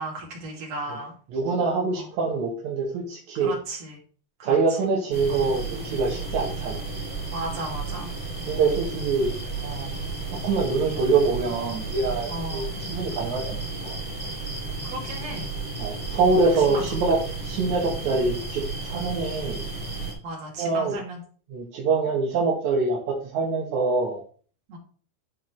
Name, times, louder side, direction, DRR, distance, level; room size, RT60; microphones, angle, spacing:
voice 1, 0.0-1.1 3.4-3.9 4.4-4.6 7.3-8.1 12.3-12.7 14.8-15.5 16.7-16.8 20.2-21.2 24.7-24.8, right 2 dB, 45° right, -2 dB, 2.9 m, -34 dB
voice 2, 1.3-3.6 4.4-6.8 8.5-9.3 9.6-9.9 10.3-13.9 15.8-19.6 20.6-21.0 21.5-24.2, right 4 dB, 65° right, -3 dB, 2.0 m, -25 dB
sound 1, 5.1-20.1, right 3 dB, 20° right, 1.9 m, -33 dB
11.5 x 4.6 x 3.1 m, 0.44 s
omnidirectional pair, 4.6 m